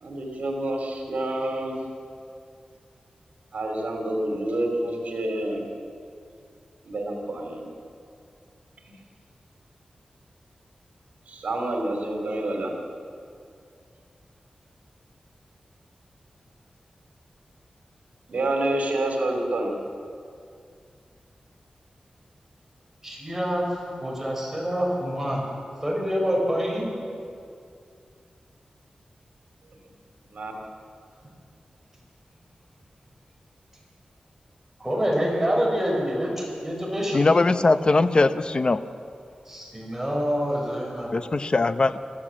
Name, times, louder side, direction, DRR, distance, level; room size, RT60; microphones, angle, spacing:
voice 1, 0.0-1.7 3.5-5.6 6.8-7.6 8.9-9.0 11.3-12.7 18.3-19.8 30.3-30.5, right 1 dB, 85° right, 2 dB, 3.0 m, -28 dB
voice 2, 23.0-25.4 25.8-26.9 34.8-37.3 39.5-41.1, equal, 10° right, -2 dB, 5.8 m, -26 dB
voice 3, 37.1-38.8 41.1-42.0, left 3 dB, 40° left, 11 dB, 0.8 m, -20 dB
24.0 x 14.5 x 7.5 m, 2.4 s
wide cardioid pair, 110°, 2 cm